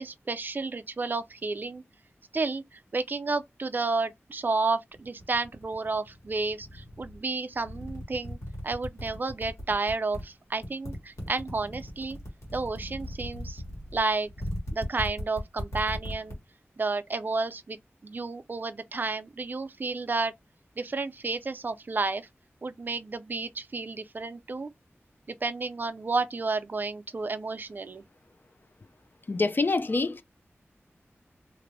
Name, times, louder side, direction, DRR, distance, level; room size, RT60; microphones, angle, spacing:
voice 1, 0.0-1.8 2.3-8.4 8.6-12.2 12.5-13.6 13.9-14.3 14.7-16.4 16.8-17.8 18.0-20.3 20.8-22.3 22.6-24.7 25.3-28.0, right 3 dB, 40° right, 0.3 m, -31 dB
sound 1, 4.9-7.2 7.6-10.2 10.6-16.3, equal, 85° left, 1.3 m, -38 dB
voice 2, 29.3-30.2, left 3 dB, 45° left, 0.4 m, -26 dB
3.1 x 2.5 x 2.6 m
wide cardioid pair, 70°, 5 cm